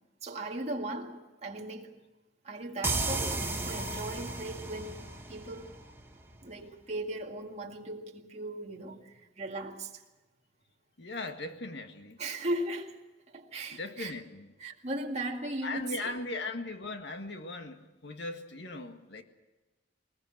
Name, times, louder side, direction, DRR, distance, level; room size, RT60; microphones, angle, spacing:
voice 1, 0.2-2.0 2.4-5.7 6.4-10.0 12.2-13.0 13.3-14.1 14.6-16.2, right 1 dB, 40° right, 2.1 m, -38 dB
sound 1, 2.8-6.4, right 2 dB, 15° right, 1.7 m, -34 dB
voice 2, 11.0-12.2 13.7-14.5 15.6-19.2, left 2 dB, 65° left, 1.8 m, -38 dB
20.5 x 20.5 x 7.8 m
head